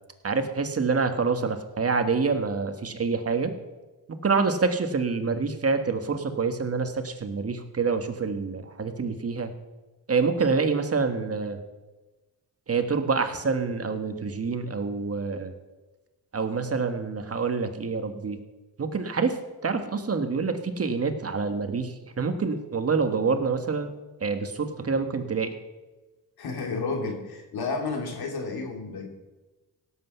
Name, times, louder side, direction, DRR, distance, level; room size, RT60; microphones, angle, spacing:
voice 1, 0.2-3.5 4.1-9.5 10.1-11.6 12.7-15.5 16.3-18.4 18.8-23.9 24.2-25.5, right 4 dB, 40° right, 7 dB, 1.5 m, -27 dB
voice 2, 26.4-29.1, left 4 dB, 70° left, 3 dB, 3.0 m, -31 dB
17.0 x 8.1 x 5.7 m, 1.1 s
cardioid pair, 95°, 38 cm